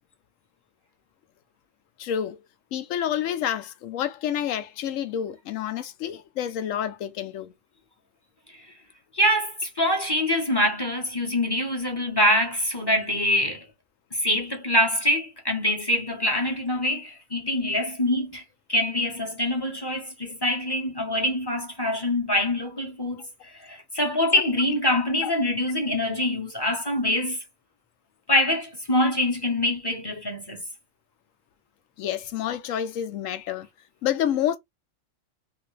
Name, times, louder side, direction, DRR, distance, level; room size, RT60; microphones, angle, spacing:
voice 1, 2.0-2.4 2.7-7.5 25.2-25.3 32.0-33.7 34.0-34.6, left 10 dB, 80° left, 1.0 m, -28 dB
voice 2, 9.1-13.7 14.1-18.4 18.7-23.3 23.6-27.4 28.3-30.6, left 1 dB, 20° left, 0.8 m, -24 dB
3.3 x 2.4 x 3.2 m
omnidirectional pair, 1.3 m